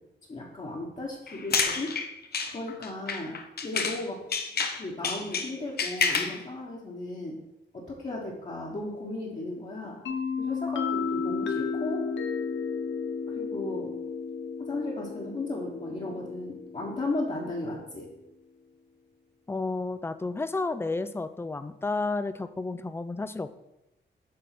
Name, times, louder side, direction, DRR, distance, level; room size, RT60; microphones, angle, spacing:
voice 1, 0.3-1.9 2.5-4.2 4.7-7.4 7.7-10.0 10.4-12.0 13.3-13.9 14.6-18.1, left 2 dB, 40° left, -5 dB, 1.4 m, -35 dB
sound 1, 1.3-4.0 4.3-6.4, left 5 dB, 55° left, 0.7 m, -29 dB
sound 2, 10.1-17.7, left 5 dB, 90° left, 0.8 m, -33 dB
voice 2, 19.5-23.6, left 3 dB, 10° left, 12 dB, 0.4 m, -31 dB
7.6 x 3.5 x 6.0 m, 0.90 s
wide cardioid pair, 105°, 19 cm